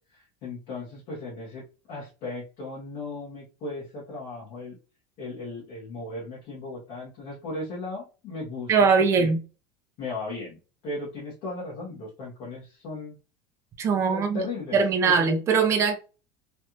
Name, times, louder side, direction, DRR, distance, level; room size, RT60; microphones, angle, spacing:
voice 1, 0.1-1.6 1.9-4.8 5.2-9.3 10.0-13.2 14.1-15.3, left 2 dB, 45° left, 1.3 m, -36 dB
voice 2, 8.7-9.4 13.8-14.4 14.7-16.0, right 5 dB, 25° right, 0.7 m, -21 dB
3.3 x 2.5 x 2.9 m
cardioid pair, 155°, 11 cm